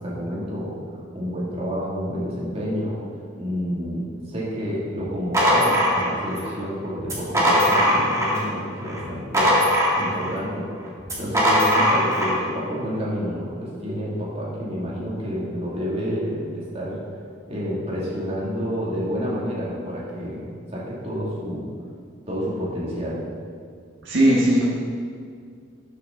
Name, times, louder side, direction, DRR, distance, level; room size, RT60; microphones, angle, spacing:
voice 1, 0.0-9.5 10.0-10.7 11.2-17.0 17.5-21.7 22.3-23.2, equal, 30° right, -7 dB, 2.6 m, -29 dB
sound 1, 5.0-6.5 7.0-8.5 8.8-10.4 11.0-12.4, equal, 15° right, 2.0 m, -20 dB
voice 2, 24.0-24.7, right 1 dB, 70° right, -5 dB, 1.8 m, -18 dB
12.5 x 6.7 x 3.9 m, 2.2 s
head